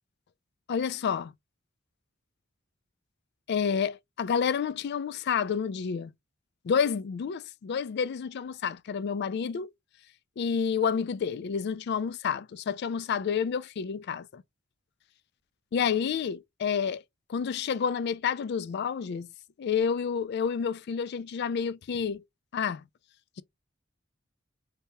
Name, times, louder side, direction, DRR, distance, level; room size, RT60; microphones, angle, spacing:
voice 1, 0.7-1.3 3.5-6.1 6.6-9.7 10.4-14.4 15.7-17.0 17.3-19.3 19.6-22.2 22.5-22.8, left 6 dB, 55° left, 0.3 m, -29 dB
3.3 x 2.8 x 2.8 m
head